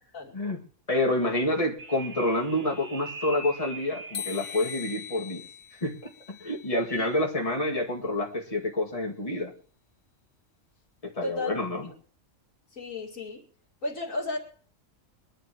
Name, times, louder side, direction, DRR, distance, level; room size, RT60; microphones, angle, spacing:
voice 1, 0.9-5.5 5.8-9.5 11.0-11.9, left 1 dB, 25° left, -1 dB, 2.4 m, -28 dB
sound 1, 1.8-5.3, right 3 dB, 85° right, 1.7 m, -42 dB
sound 2, 4.1-7.2, left 10 dB, 60° left, 1.1 m, -41 dB
voice 2, 11.2-11.6 12.8-13.4 13.8-14.4, left 2 dB, 80° left, 0 dB, 2.8 m, -33 dB
23.0 x 11.5 x 3.1 m, 0.43 s
omnidirectional pair, 1.3 m